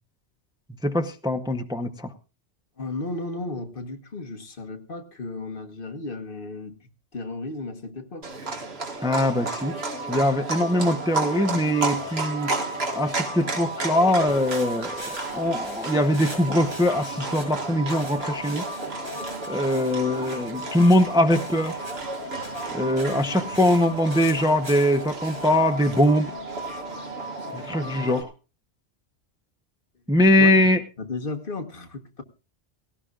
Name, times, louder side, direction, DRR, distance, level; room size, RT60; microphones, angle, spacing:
voice 1, 0.8-2.1 9.0-9.7 10.1-12.5 12.9-18.6 19.5-21.8 22.7-26.3 27.5-28.3 30.1-30.8, left 1 dB, 5° right, 7 dB, 0.7 m, -22 dB
voice 2, 2.8-6.8 7.1-8.3 30.4-30.5 31.0-32.2, left 2 dB, 55° left, 6 dB, 1.5 m, -34 dB
Livestock farm animals working animals, 8.2-28.2, right 3 dB, 65° right, 2.0 m, -33 dB
sound 1, 8.9-28.2, right 1 dB, 50° right, 4.1 m, -38 dB
sound 2, 14.3-27.1, right 1 dB, 25° right, 6.5 m, -44 dB
18.0 x 17.5 x 2.4 m, 0.32 s
omnidirectional pair, 1.1 m